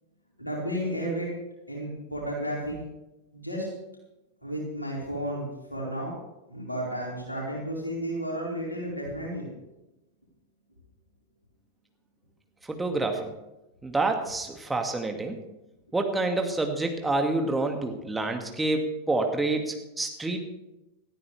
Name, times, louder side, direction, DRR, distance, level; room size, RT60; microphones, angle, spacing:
voice 1, 0.4-1.3 1.7-2.8 3.3-3.7 4.4-6.1 6.5-9.5 14.3-14.4, equal, 85° left, -4 dB, 4.7 m, -32 dB
voice 2, 12.7-13.3 13.8-15.4 15.9-20.4, right 2 dB, 10° right, 4 dB, 2.1 m, -28 dB
19.0 x 14.0 x 3.4 m, 0.96 s
figure-of-eight pair, 90°, 0 cm